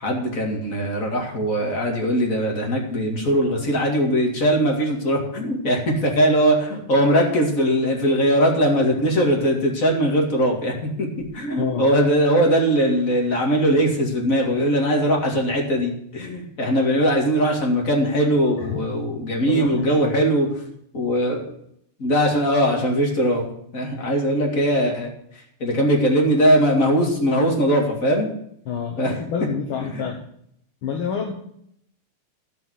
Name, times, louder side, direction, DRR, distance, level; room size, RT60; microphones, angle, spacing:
voice 1, 0.0-20.5 20.9-21.5 22.0-23.5 23.7-25.1 25.6-28.3 29.0-29.1 29.8-30.1, equal, 30° left, 1 dB, 2.3 m, -20 dB
voice 2, 19.4-20.2 28.6-30.2 30.8-31.3, left 6 dB, 60° left, 3 dB, 1.5 m, -28 dB
12.5 x 5.6 x 8.2 m, 0.71 s
omnidirectional pair, 3.4 m